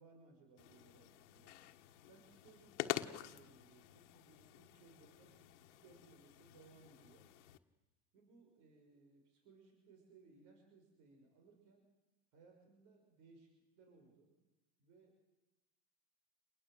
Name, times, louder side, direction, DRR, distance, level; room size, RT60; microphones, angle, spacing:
voice 1, 0.0-1.6 2.1-7.3 8.1-11.9 12.3-14.4 14.8-15.1, right 4 dB, 60° right, 2 dB, 6.1 m, -64 dB
sound 1, 0.6-7.6, left 15 dB, 80° left, 1.4 m, -48 dB
28.0 x 20.5 x 8.0 m, 1.0 s
supercardioid pair, 115°, 35 cm